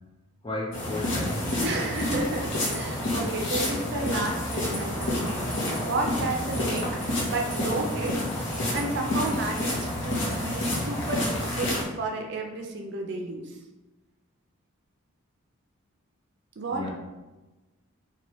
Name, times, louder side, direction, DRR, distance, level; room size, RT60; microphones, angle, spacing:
voice 1, 0.4-1.6 6.7-6.9 16.7-16.9, left 2 dB, 20° left, -2 dB, 0.4 m, -34 dB
sound 1, 0.7-11.8, left 1 dB, 60° left, 0.8 m, -29 dB
voice 2, 1.6-6.9 7.3-8.2 8.7-13.6 16.6-16.9, right 2 dB, 50° right, 2 dB, 0.4 m, -32 dB
3.0 x 2.3 x 3.0 m, 1.1 s
head